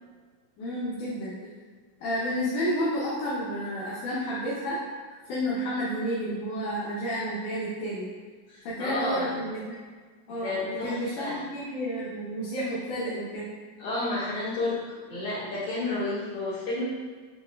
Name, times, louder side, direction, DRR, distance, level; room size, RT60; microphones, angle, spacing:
voice 1, 0.6-1.5 2.0-4.8 5.3-8.1 8.6-9.8 10.3-13.5, equal, 70° left, -8 dB, 1.8 m, -31 dB
voice 2, 8.5-9.4 10.4-11.4 13.8-16.8, left 2 dB, 55° left, -10 dB, 2.3 m, -31 dB
7.4 x 2.8 x 2.2 m, 1.5 s
omnidirectional pair, 3.5 m